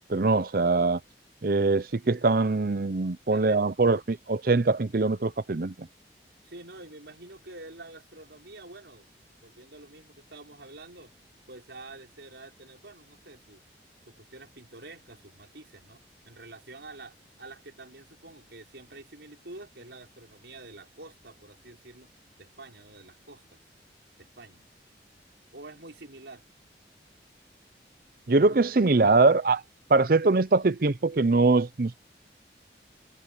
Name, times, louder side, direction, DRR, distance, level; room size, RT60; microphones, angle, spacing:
voice 1, 0.1-1.0 1.4-5.9 28.3-29.6 29.9-32.0, right 3 dB, 55° right, 0.7 m, -23 dB
voice 2, 3.3-3.7 6.4-9.1 9.4-11.1 11.5-13.6 14.1-22.1 22.4-23.6 24.2-24.7 25.5-26.4, right 2 dB, 80° right, 5.1 m, -47 dB
head